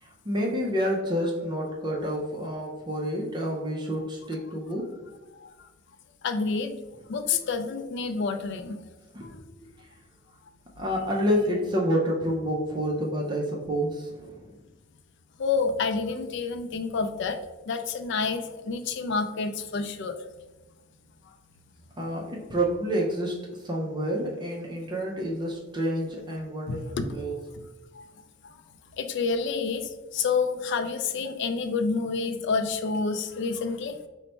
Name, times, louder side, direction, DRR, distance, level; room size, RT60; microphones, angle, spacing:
voice 1, 0.0-4.8 9.1-9.5 10.8-14.5 22.0-26.8 27.1-27.4, equal, 25° right, -2 dB, 0.5 m, -29 dB
voice 2, 6.2-6.8 7.1-8.8 15.4-17.4 17.7-20.2 26.7-27.2 27.5-27.6 28.0-28.1 29.0-34.0, left 4 dB, 60° left, 8 dB, 0.4 m, -28 dB
3.9 x 2.1 x 4.3 m, 1.1 s
head